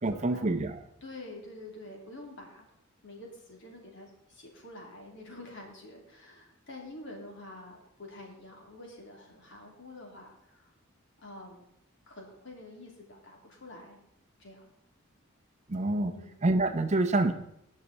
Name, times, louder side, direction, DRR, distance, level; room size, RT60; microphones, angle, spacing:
voice 1, 0.0-0.8 15.7-16.1 16.4-17.3, right 2 dB, 35° right, 8 dB, 0.6 m, -27 dB
voice 2, 1.0-2.6 3.0-10.7 11.2-11.7 12.1-14.0 14.4-14.7 16.1-16.4, left 2 dB, 60° left, 0 dB, 2.9 m, -47 dB
19.0 x 6.5 x 4.1 m, 0.78 s
head